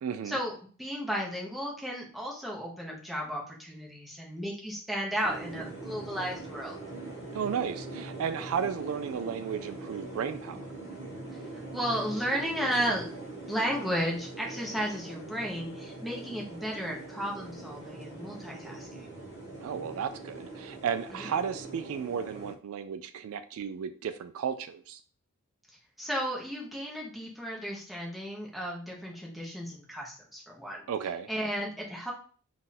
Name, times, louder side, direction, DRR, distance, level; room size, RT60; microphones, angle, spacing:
voice 1, 0.0-0.4 7.3-10.6 19.6-25.0 30.9-31.3, right 7 dB, 65° right, 10 dB, 0.3 m, -34 dB
voice 2, 0.8-6.8 11.7-13.1 13.5-19.1 21.1-21.3 26.0-30.8 31.3-32.1, equal, ahead, -3 dB, 1.0 m, -34 dB
sound 1, 5.2-22.5, right 2 dB, 30° right, 1.2 m, -42 dB
3.8 x 2.5 x 4.2 m, 0.42 s
head